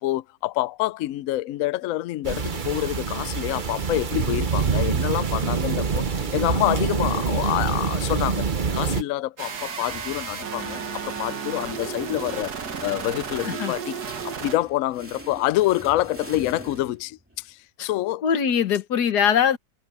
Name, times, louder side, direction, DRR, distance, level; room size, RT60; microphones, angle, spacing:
voice 1, 0.0-12.5 12.8-18.2, left 16 dB, 85° left, 0.7 m, -27 dB
sound 1, 2.2-9.0, right 5 dB, 40° right, 0.8 m, -25 dB
sound 2, 9.4-14.6, right 6 dB, 60° right, 2.0 m, -33 dB
sound 3, 9.5-17.4, right 1 dB, 5° right, 2.5 m, -43 dB
voice 2, 18.2-19.6, left 8 dB, 60° left, 1.7 m, -21 dB
omnidirectional pair, 2.0 m